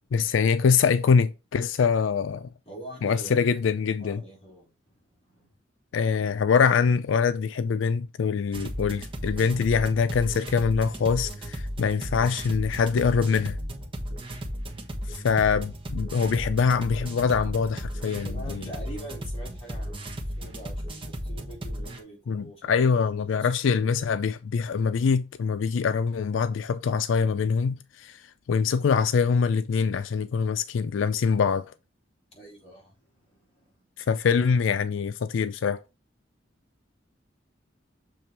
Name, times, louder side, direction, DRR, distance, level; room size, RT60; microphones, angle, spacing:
voice 1, 0.1-2.5 3.0-4.2 5.9-13.6 15.1-18.7 22.3-28.2 28.5-31.7 34.0-35.8, left 6 dB, 85° left, 0.4 m, -24 dB
voice 2, 2.7-3.6 3.9-5.6 15.3-15.6 18.2-24.0 32.3-33.9, right 1 dB, 30° left, 3.5 m, -45 dB
sound 1, 8.5-22.0, equal, 30° right, 1.3 m, -35 dB
6.9 x 3.4 x 4.4 m
head